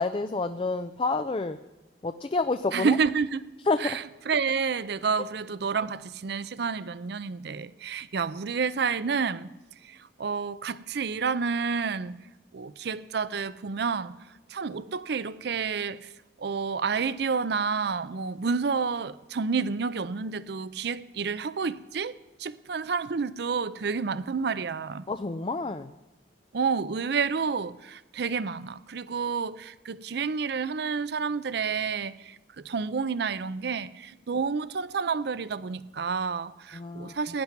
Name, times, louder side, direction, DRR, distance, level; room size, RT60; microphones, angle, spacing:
voice 1, 0.0-1.6 2.0-3.0 3.7-4.0 25.1-25.9 36.7-37.1, left 3 dB, 30° left, 0.4 m, -28 dB
voice 2, 2.7-3.5 3.8-9.5 9.8-12.2 12.5-14.1 14.5-16.1 16.4-25.0 26.5-37.4, right 5 dB, 60° right, 0.5 m, -29 dB
16.5 x 10.5 x 5.9 m
head